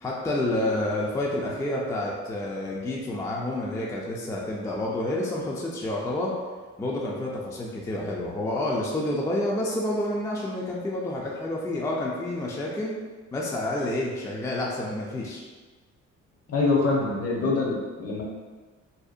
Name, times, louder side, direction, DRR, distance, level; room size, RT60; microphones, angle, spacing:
voice 1, 0.0-6.3 6.8-12.9 13.3-15.4, left 1 dB, 10° left, -3 dB, 0.3 m, -29 dB
voice 2, 16.5-18.2, left 3 dB, 55° left, -2 dB, 0.7 m, -24 dB
2.7 x 2.1 x 2.4 m, 1.4 s
cardioid pair, 90°, 30 cm